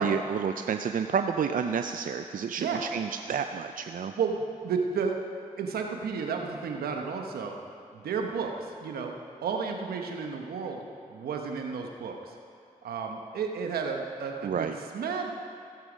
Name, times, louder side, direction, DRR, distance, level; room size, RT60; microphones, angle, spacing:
voice 1, 0.0-4.1 14.4-14.8, right 7 dB, 60° right, 7 dB, 0.5 m, -30 dB
voice 2, 4.2-5.2 5.6-7.5 7.9-9.1 9.4-10.8 11.1-12.3 12.8-14.7 14.9-15.3, right 5 dB, 85° right, 3 dB, 1.1 m, -32 dB
16.5 x 7.7 x 5.1 m, 2.5 s
supercardioid pair, 45°, 15 cm